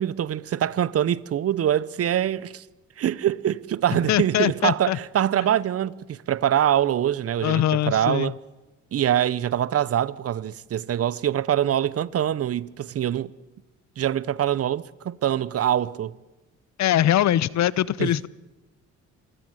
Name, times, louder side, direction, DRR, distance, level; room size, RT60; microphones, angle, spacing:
voice 1, 0.0-2.6 3.0-8.3 8.9-13.3 14.0-16.1 18.0-18.3, right 10 dB, 50° right, 0.7 m, -24 dB
voice 2, 4.1-5.0 7.4-8.3 16.8-18.3, left 12 dB, 65° left, 0.7 m, -22 dB
26.0 x 16.0 x 7.8 m
cardioid pair, 90°, 30 cm